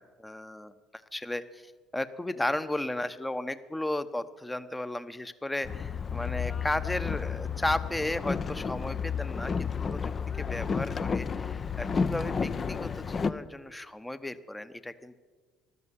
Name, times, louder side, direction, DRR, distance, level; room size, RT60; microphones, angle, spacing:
voice 1, 0.0-10.1 10.4-15.2, left 1 dB, 10° left, 13 dB, 1.0 m, -34 dB
Boat Water vehicle, 5.6-13.3, left 6 dB, 35° left, 0.7 m, -31 dB
13.5 x 12.5 x 8.4 m, 1.5 s
figure-of-eight pair, 55°, 0 cm